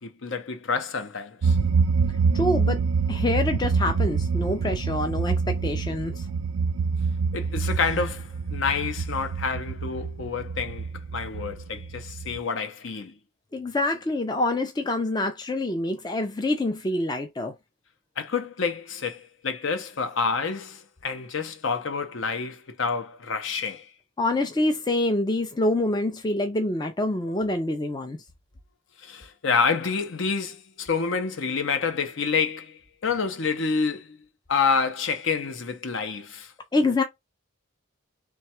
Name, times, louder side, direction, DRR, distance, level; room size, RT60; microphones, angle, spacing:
voice 1, 0.0-1.6 7.3-13.2 18.2-23.9 29.0-34.2 34.5-36.5, left 5 dB, 60° left, 0.6 m, -28 dB
sound 1, 1.4-12.4, right 5 dB, 70° right, 0.4 m, -26 dB
voice 2, 2.3-2.8 3.1-6.3 13.5-17.5 24.2-28.2 36.7-37.0, left 2 dB, 20° left, 0.4 m, -26 dB
3.2 x 2.3 x 4.3 m
head